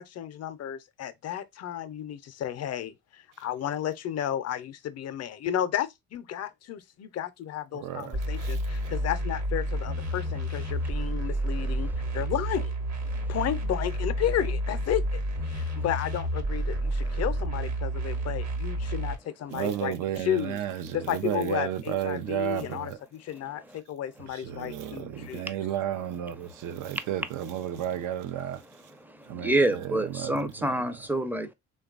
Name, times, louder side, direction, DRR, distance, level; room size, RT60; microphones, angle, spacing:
voice 1, 0.0-11.9 12.1-12.7 13.3-15.2 15.5-20.6 20.9-25.5, left 10 dB, 55° left, 0.5 m, -33 dB
voice 2, 7.7-8.6 19.5-23.0 24.3-28.6 29.3-30.7, right 11 dB, 85° right, 0.6 m, -33 dB
sound 1, 8.1-19.2, right 1 dB, 60° right, 0.9 m, -30 dB
voice 3, 11.3-12.2 13.1-13.3 15.5-15.8 23.7-23.8 24.8-25.6 26.5-27.1 28.9-31.5, right 1 dB, 5° right, 0.5 m, -31 dB
3.1 x 2.3 x 2.3 m
cardioid pair, 90°, 30 cm